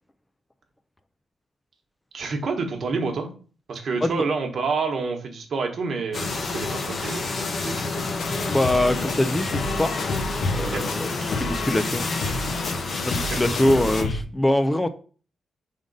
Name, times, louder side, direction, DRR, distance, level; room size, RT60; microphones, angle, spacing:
voice 1, 2.1-3.3 3.7-7.3 7.6-8.0 10.6-10.8 13.2-13.4, right 4 dB, 50° right, 4 dB, 1.1 m, -28 dB
sound 1, 6.1-14.0, left 3 dB, 40° left, 0.7 m, -29 dB
sound 2, 8.2-14.2, left 2 dB, 75° left, 0.6 m, -31 dB
voice 2, 8.5-10.0 10.5-12.0 13.0-14.9, left 1 dB, 10° left, 10 dB, 0.3 m, -23 dB
5.1 x 3.7 x 5.2 m, 0.40 s
wide cardioid pair, 150°, 0 cm